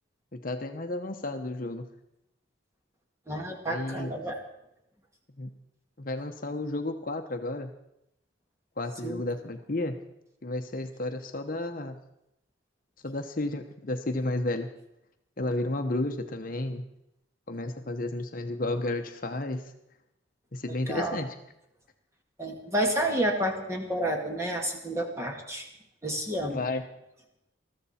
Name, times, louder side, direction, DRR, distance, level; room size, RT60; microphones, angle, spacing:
voice 1, 0.3-1.9 3.7-4.1 5.4-5.5 6.0-7.7 8.8-9.9 10.4-12.0 13.0-14.7 15.4-16.8 17.5-19.7 20.5-21.3 26.5-26.8, left 2 dB, 45° left, 6 dB, 0.9 m, -32 dB
voice 2, 3.3-4.4 9.0-9.2 20.9-21.2 22.4-25.7 26.0-26.6, right 1 dB, 15° right, 2 dB, 2.0 m, -30 dB
21.0 x 13.5 x 4.3 m, 0.83 s
head